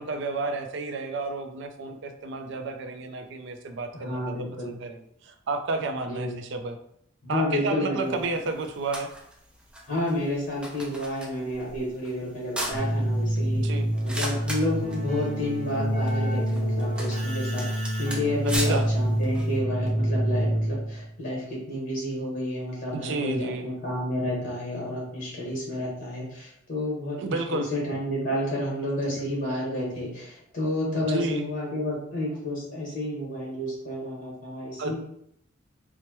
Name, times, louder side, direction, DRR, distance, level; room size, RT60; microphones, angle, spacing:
voice 1, 0.0-6.8 7.3-9.1 13.5-13.9 18.4-18.8 22.9-23.7 27.2-27.7 31.0-31.5 34.8-35.0, right 3 dB, 65° right, 6 dB, 0.4 m, -31 dB
voice 2, 3.9-4.7 6.1-6.3 7.2-8.2 9.9-13.6 14.0-35.0, left 1 dB, 45° left, -4 dB, 1.4 m, -30 dB
sound 1, 8.0-19.6, right 1 dB, 5° right, 0.5 m, -39 dB
Keyboard (musical), 12.7-21.1, right 1 dB, 35° right, 0.8 m, -27 dB
4.4 x 2.1 x 2.9 m, 0.72 s
head